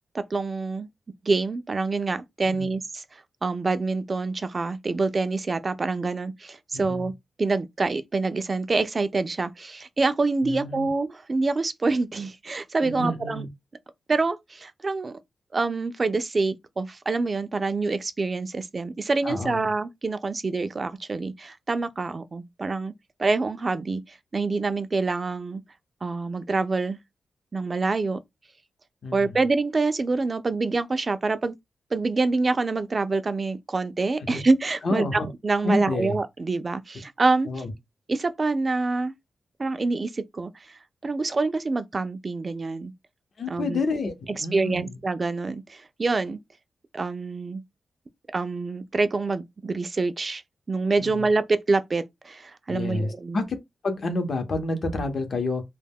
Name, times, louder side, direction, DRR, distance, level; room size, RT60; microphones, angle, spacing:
voice 1, 0.1-0.9 1.2-3.0 3.4-7.1 7.4-13.5 14.1-15.2 15.5-22.9 23.2-25.6 26.0-27.0 27.5-28.2 29.1-31.5 31.9-37.5 38.1-39.1 39.6-42.9 43.5-43.8 44.4-46.4 46.9-47.6 48.3-50.4 50.7-53.4, right 3 dB, 35° right, 0.3 m, -26 dB
voice 2, 6.7-7.1 10.4-10.9 12.8-13.5 19.2-19.7 29.0-29.4 34.3-34.4 34.8-35.3 35.6-36.2 37.5-37.7 43.4-45.0 51.0-51.3 52.7-53.6 53.8-55.6, left 2 dB, 50° left, 0.7 m, -29 dB
2.1 x 2.1 x 3.5 m
wide cardioid pair, 115°, 0 cm